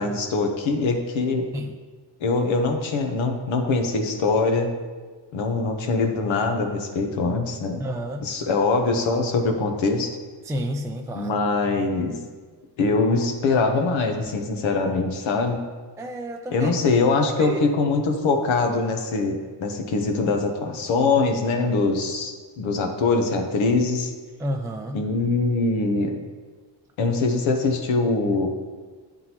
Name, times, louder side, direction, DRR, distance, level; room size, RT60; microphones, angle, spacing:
voice 1, 0.0-1.5 2.2-4.7 5.3-7.8 8.2-10.2 11.1-12.1 12.8-15.6 16.5-24.1 24.9-26.1 27.0-28.5, left 3 dB, 75° left, 4 dB, 1.0 m, -23 dB
voice 2, 7.8-8.3 10.5-11.4 16.0-16.7 17.4-17.6 24.4-25.0, equal, 5° right, 3 dB, 0.4 m, -30 dB
9.7 x 3.7 x 2.9 m, 1.5 s
cardioid pair, 65°, 47 cm